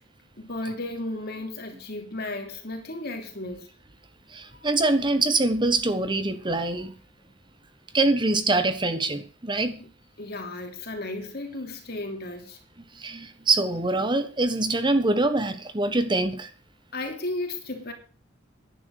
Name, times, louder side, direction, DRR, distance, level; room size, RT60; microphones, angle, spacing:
voice 1, 0.3-3.7 4.6-4.7 9.8-9.9 10.2-12.6 16.9-17.9, left 2 dB, 55° left, 3.2 m, -34 dB
voice 2, 4.3-6.9 7.9-9.8 12.9-16.5, right 2 dB, 25° right, 1.3 m, -24 dB
11.0 x 9.7 x 6.6 m
head